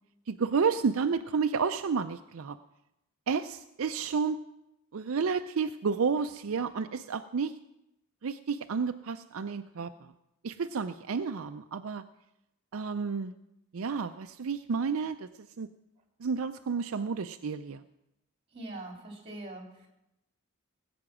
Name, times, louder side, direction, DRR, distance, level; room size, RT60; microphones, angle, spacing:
voice 1, 0.3-2.6 3.3-4.4 4.9-7.6 8.2-9.9 10.4-12.0 12.7-13.4 13.7-15.3 15.6-15.7 16.2-17.8, right 5 dB, 65° right, 8 dB, 0.5 m, -31 dB
voice 2, 18.5-19.9, right 2 dB, 25° right, 1 dB, 3.6 m, -42 dB
19.0 x 8.7 x 6.1 m, 0.88 s
head